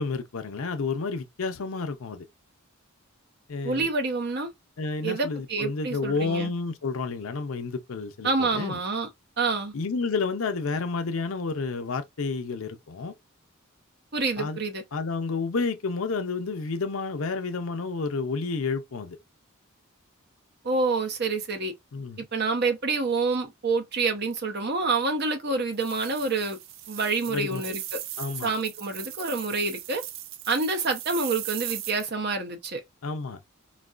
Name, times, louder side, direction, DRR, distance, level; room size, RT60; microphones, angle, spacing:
voice 1, 0.0-2.2 3.5-3.9 4.8-8.8 9.7-13.1 14.4-14.6 14.9-19.2 21.9-22.3 27.3-27.7 28.2-28.5 33.0-33.4, left 4 dB, 75° left, 0.6 m, -30 dB
voice 2, 3.6-4.5 5.0-6.5 8.2-9.1 9.4-9.7 14.1-14.8 20.6-21.7 22.3-26.6 26.9-28.0 28.4-30.0 30.5-32.8, right 3 dB, 50° right, 0.8 m, -27 dB
sound 1, 25.7-32.0, right 12 dB, 65° right, 0.4 m, -38 dB
4.0 x 2.2 x 2.4 m
head